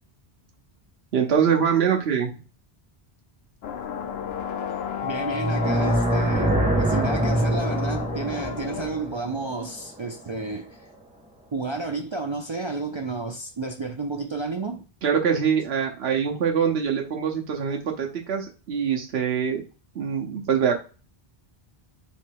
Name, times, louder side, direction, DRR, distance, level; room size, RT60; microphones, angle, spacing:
voice 1, 1.1-2.3 15.0-19.6 19.9-20.8, right 7 dB, 80° right, 1.1 m, -24 dB
sound 1, 3.6-8.9, left 7 dB, 80° left, 0.9 m, -32 dB
voice 2, 5.0-10.9 11.5-14.8, right 3 dB, 50° right, 0.3 m, -31 dB
sound 2, 5.3-10.4, right 1 dB, 10° right, 1.1 m, -25 dB
3.2 x 2.9 x 4.5 m
omnidirectional pair, 1.0 m